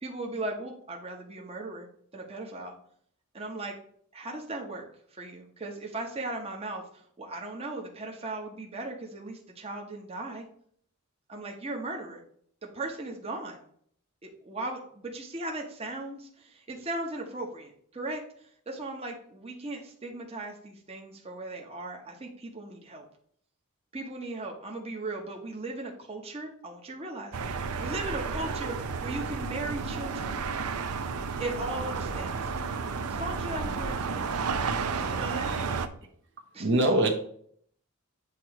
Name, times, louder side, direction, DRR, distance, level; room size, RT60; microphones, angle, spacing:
voice 1, 0.0-2.8 3.3-3.8 4.1-4.8 5.1-6.8 7.2-10.4 11.3-12.2 12.7-13.6 14.2-18.2 18.7-23.0 23.9-28.8 29.0-30.4 31.4-32.6 33.1-34.4 35.0-35.6 36.5-36.8, right 2 dB, 25° right, 1 dB, 1.0 m, -37 dB
sound 1, 27.3-35.9, right 5 dB, 90° right, 0.6 m, -32 dB
voice 2, 35.2-35.7 36.6-37.1, right 1 dB, 55° right, 3 dB, 1.1 m, -25 dB
8.2 x 3.0 x 4.7 m, 0.62 s
head